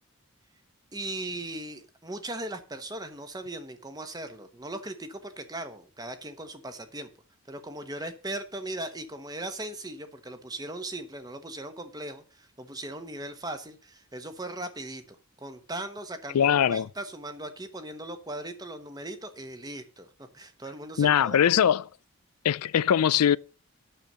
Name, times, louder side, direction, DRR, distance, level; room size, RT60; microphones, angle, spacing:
voice 1, 0.9-7.1 7.5-21.5, right 1 dB, 15° right, 1.1 m, -38 dB
voice 2, 16.3-16.9 21.0-21.8 22.4-23.4, left 9 dB, 90° left, 0.4 m, -21 dB
9.1 x 7.0 x 6.7 m
head